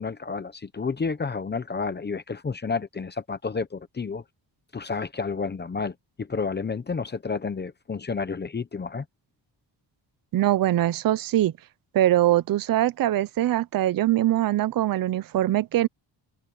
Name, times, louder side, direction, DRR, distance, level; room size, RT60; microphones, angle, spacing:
voice 1, 0.0-4.2 4.7-9.0, left 4 dB, 20° left, 0.8 m, -30 dB
voice 2, 10.3-11.5 11.9-15.9, right 13 dB, 50° right, 0.6 m, -22 dB
wide cardioid pair, 165°, 45 cm